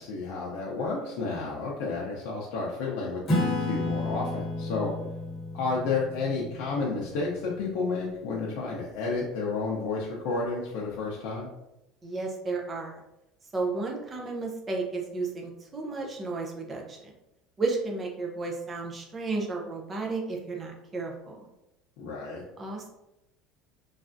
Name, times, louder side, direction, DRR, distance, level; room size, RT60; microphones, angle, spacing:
voice 1, 0.0-4.9 5.5-11.5 22.0-22.4, left 4 dB, 60° left, -4 dB, 0.5 m, -31 dB
Acoustic guitar / Strum, 3.3-8.3, left 2 dB, 25° left, 0.9 m, -32 dB
voice 2, 12.0-13.0 13.5-17.1 17.6-21.4 22.6-22.9, right 3 dB, 15° right, 1 dB, 0.4 m, -33 dB
3.3 x 2.3 x 2.5 m, 0.90 s
cardioid pair, 175°, 0 cm